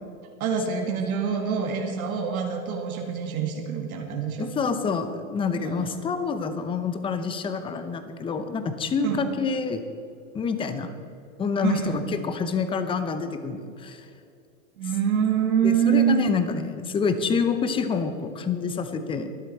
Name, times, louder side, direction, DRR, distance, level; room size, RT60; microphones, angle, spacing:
voice 1, 0.4-4.5 5.6-5.9 9.0-9.3 11.6-12.0 14.8-16.2, right 7 dB, 85° right, 1 dB, 2.1 m, -25 dB
voice 2, 4.4-9.8 10.3-10.9 11.4-14.0 15.6-19.3, left 5 dB, 10° left, 9 dB, 0.7 m, -27 dB
23.0 x 7.7 x 4.4 m, 2.5 s
supercardioid pair, 140°, 42 cm